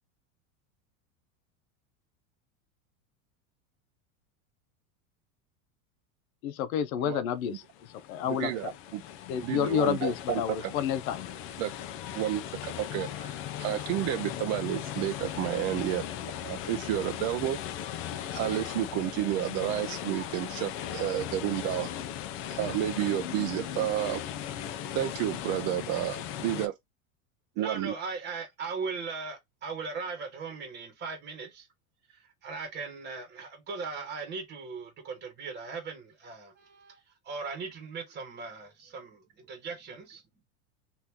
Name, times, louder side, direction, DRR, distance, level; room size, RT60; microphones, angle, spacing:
voice 1, 6.4-7.6 8.1-8.5 9.3-11.3, left 9 dB, 80° left, 0.8 m, -29 dB
sound 1, 7.6-26.7, left 10 dB, 35° left, 0.4 m, -38 dB
voice 2, 8.2-9.0 9.4-10.7 11.6-11.7 12.1-16.1 16.4-17.6 18.3-21.9 22.5-24.2 24.9-26.7 27.6-27.9, right 13 dB, 45° right, 0.4 m, -31 dB
voice 3, 27.6-31.7 32.1-37.0 37.2-40.2, right 4 dB, 25° right, 1.2 m, -38 dB
2.9 x 2.6 x 3.5 m
supercardioid pair, 140°, 41 cm